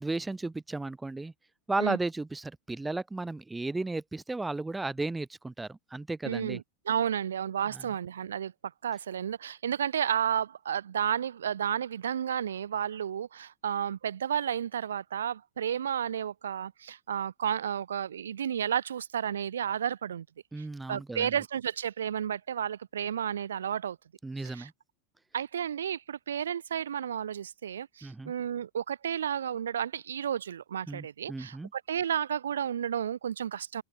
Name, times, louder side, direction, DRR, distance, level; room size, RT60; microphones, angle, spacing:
voice 1, 0.0-1.3 1.7-6.6 20.5-21.3 24.2-24.7 28.0-28.3 30.9-31.7, right 2 dB, 10° right, 2.0 m, -34 dB
voice 2, 6.2-8.5 8.8-20.3 20.6-24.0 24.4-24.7 25.3-33.8, right 9 dB, 85° right, 5.8 m, -32 dB
open air
hypercardioid pair, 100°, 0 cm